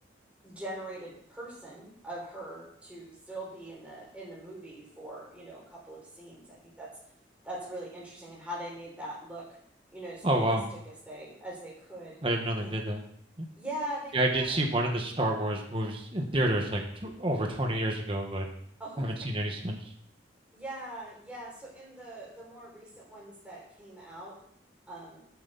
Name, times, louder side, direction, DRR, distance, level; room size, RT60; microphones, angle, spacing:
voice 1, 0.4-6.9 7.4-9.5 9.9-10.6 10.8-12.2 12.6-12.7 13.5-14.7 17.4-17.5 18.8-19.3 20.5-24.3 24.9-25.2, right 1 dB, 5° right, -6 dB, 5.9 m, -42 dB
voice 2, 10.2-10.6 12.2-13.0 13.4-13.5 14.1-18.5 19.0-19.8, right 1 dB, 30° right, 1 dB, 1.5 m, -29 dB
13.5 x 9.3 x 4.1 m, 0.66 s
head